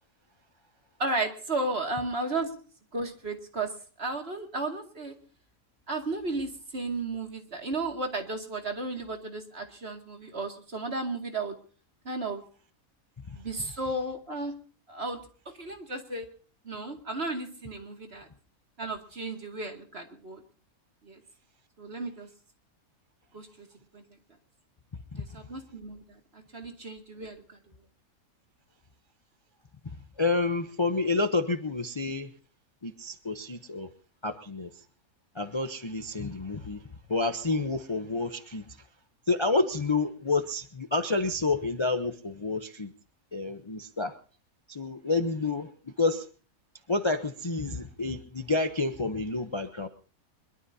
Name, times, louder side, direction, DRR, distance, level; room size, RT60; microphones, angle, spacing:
voice 1, 1.0-2.5 2.9-5.1 5.9-11.6 12.0-12.4 13.4-14.5 14.9-15.2 15.6-16.3 16.6-18.3 18.8-20.4 21.0-21.2 21.8-22.3 23.3-23.7 23.9-24.0 25.2-27.4, right 2 dB, 45° right, 3 dB, 2.5 m, -34 dB
voice 2, 29.8-32.3 32.8-33.9 34.2-34.8 35.3-38.9 39.3-42.9 43.3-44.2 44.7-46.3 46.9-49.9, left 3 dB, 25° left, 8 dB, 0.7 m, -29 dB
22.5 x 22.5 x 2.8 m, 0.40 s
omnidirectional pair, 1.5 m